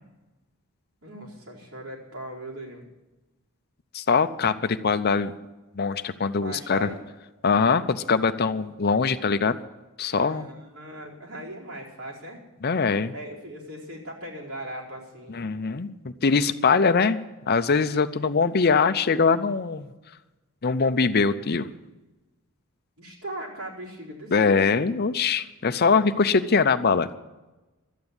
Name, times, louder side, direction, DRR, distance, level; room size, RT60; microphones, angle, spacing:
voice 1, 1.0-2.8 6.4-7.0 10.3-12.4 13.1-15.4 23.0-24.6, right 1 dB, 80° right, -4 dB, 4.4 m, -39 dB
voice 2, 3.9-5.3 5.7-6.9 7.4-9.6 10.0-10.5 12.6-13.1 15.3-17.2 17.5-19.9 20.6-21.7 24.3-27.2, left 5 dB, 45° left, 11 dB, 0.6 m, -22 dB
12.5 x 9.0 x 9.6 m, 1.1 s
head